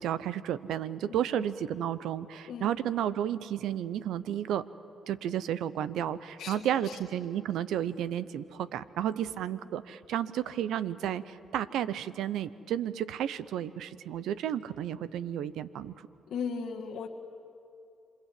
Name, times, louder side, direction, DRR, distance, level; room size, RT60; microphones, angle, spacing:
voice 1, 0.0-4.6 5.1-15.9, right 10 dB, 80° right, 15 dB, 0.8 m, -32 dB
voice 2, 1.1-1.5 2.5-2.8 6.4-7.0 16.3-17.1, left 6 dB, 75° left, 1 dB, 1.7 m, -38 dB
27.5 x 24.0 x 8.5 m, 2.6 s
supercardioid pair, 55°, 0 cm